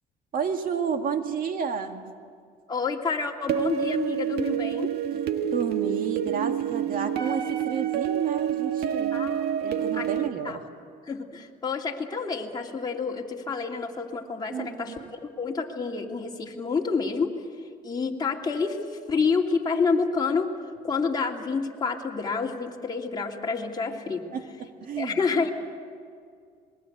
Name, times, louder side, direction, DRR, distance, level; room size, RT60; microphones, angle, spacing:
voice 1, 0.3-2.1 5.1-5.2 5.5-9.2 9.6-10.6 14.5-15.1 24.3-25.2, right 6 dB, 55° right, 6 dB, 2.1 m, -31 dB
voice 2, 2.7-4.9 9.1-10.1 10.4-10.6 11.1-17.3 17.8-18.8 19.1-20.5 20.8-24.3 25.0-25.5, left 4 dB, 25° left, -1 dB, 2.9 m, -28 dB
sound 1, 3.5-10.3, right 9 dB, 70° right, 1.5 m, -28 dB
27.0 x 21.0 x 8.1 m, 2.2 s
cardioid pair, 110°, 17 cm